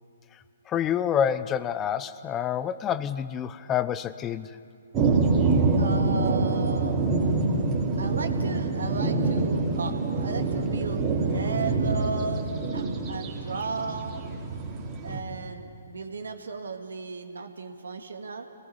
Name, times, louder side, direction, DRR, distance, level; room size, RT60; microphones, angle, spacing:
voice 1, 0.7-4.6, left 9 dB, 20° left, 15 dB, 0.6 m, -27 dB
sound 1, 4.9-15.2, right 3 dB, 25° right, 2.8 m, -26 dB
voice 2, 5.8-7.0 8.0-12.5 12.7-14.1 15.0-18.5, right 4 dB, 70° right, 6 dB, 1.8 m, -35 dB
27.0 x 18.5 x 5.6 m, 2.4 s
figure-of-eight pair, 130°, 0 cm